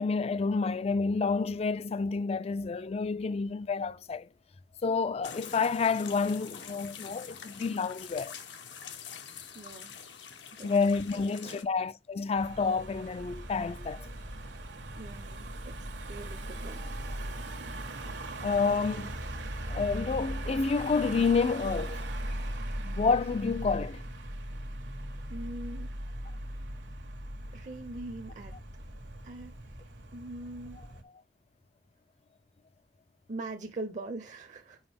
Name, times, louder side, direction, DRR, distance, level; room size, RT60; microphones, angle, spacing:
voice 1, 0.0-4.3 4.8-8.3 10.6-14.1 18.4-19.1 19.7-22.0 22.8-24.0, left 4 dB, 35° left, 0.4 m, -29 dB
sound 1, 5.2-11.6, left 7 dB, 85° left, 1.0 m, -45 dB
voice 2, 9.5-9.9 10.5-10.7 11.1-11.6 14.9-16.9 25.3-25.9 27.5-28.6 29.2-29.5 30.1-30.8 33.3-34.8, right 2 dB, 45° right, 0.7 m, -42 dB
Car passing by / Engine, 12.4-31.0, right 1 dB, 85° right, 1.4 m, -39 dB
7.1 x 5.1 x 3.4 m
head